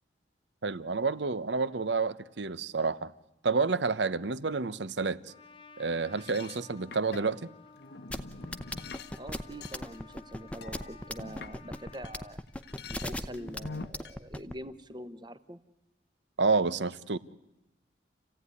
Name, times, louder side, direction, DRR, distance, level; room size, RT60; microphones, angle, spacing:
voice 1, 0.6-3.1 3.4-5.2 5.8-7.5 16.4-17.2, right 4 dB, 80° right, 0.9 m, -29 dB
Trumpet, 5.3-12.4, left 4 dB, 30° left, 1.2 m, -54 dB
sound 1, 6.1-12.1 12.5-14.1, left 4 dB, 65° left, 0.9 m, -46 dB
sound 2, 8.1-14.5, left 1 dB, 5° left, 0.8 m, -36 dB
voice 2, 9.2-12.4 12.9-15.6, equal, 25° right, 1.0 m, -44 dB
28.5 x 16.0 x 9.7 m
head